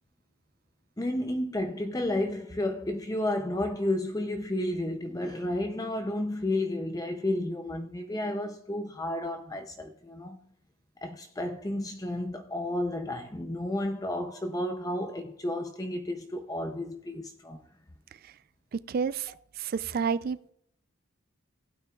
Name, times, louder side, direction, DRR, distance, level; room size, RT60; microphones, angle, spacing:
voice 1, 1.0-10.4 11.0-17.6, left 1 dB, 15° left, 0.5 m, -32 dB
voice 2, 18.9-19.3 19.6-20.5, right 6 dB, 45° right, 0.3 m, -29 dB
15.5 x 8.9 x 2.3 m
head